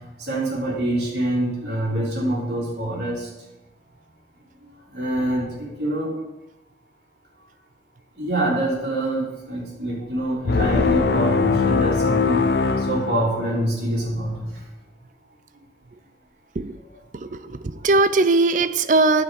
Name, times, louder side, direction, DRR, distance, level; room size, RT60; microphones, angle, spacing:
voice 1, 0.2-3.3 4.9-6.1 8.2-9.2 9.5-12.5 12.9-14.5, right 1 dB, 70° right, -5 dB, 3.7 m, -25 dB
sound 1, 10.5-13.8, left 4 dB, 70° left, 0.6 m, -21 dB
voice 2, 17.1-19.2, right 3 dB, 45° right, 12 dB, 0.5 m, -20 dB
9.6 x 7.6 x 4.9 m, 1.0 s
head